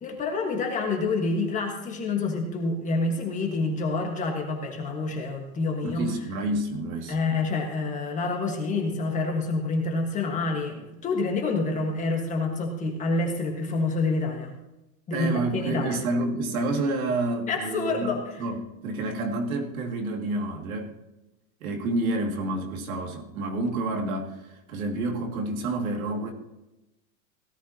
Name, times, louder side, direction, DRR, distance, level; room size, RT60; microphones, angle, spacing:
voice 1, 0.0-6.1 7.1-14.5 15.1-16.0 17.5-18.4, left 3 dB, 20° left, 2 dB, 1.5 m, -27 dB
voice 2, 5.8-7.2 15.1-20.9 21.6-26.3, right 2 dB, 80° right, 2 dB, 2.3 m, -29 dB
17.5 x 12.0 x 2.8 m, 0.96 s
supercardioid pair, 165°, 42 cm